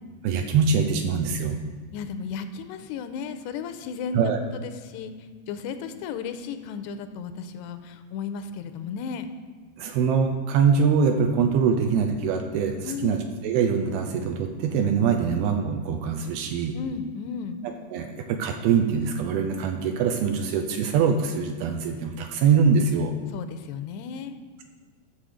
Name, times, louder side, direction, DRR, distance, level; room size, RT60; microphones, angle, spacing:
voice 1, 0.2-1.6 4.1-4.4 9.8-13.2 13.4-16.8 17.6-23.1, right 6 dB, 80° right, 5 dB, 2.4 m, -23 dB
voice 2, 1.9-9.3 12.8-13.1 16.7-17.6 23.3-24.4, left 6 dB, 85° left, 9 dB, 2.6 m, -34 dB
11.5 x 6.9 x 4.9 m, 1.5 s
omnidirectional pair, 4.8 m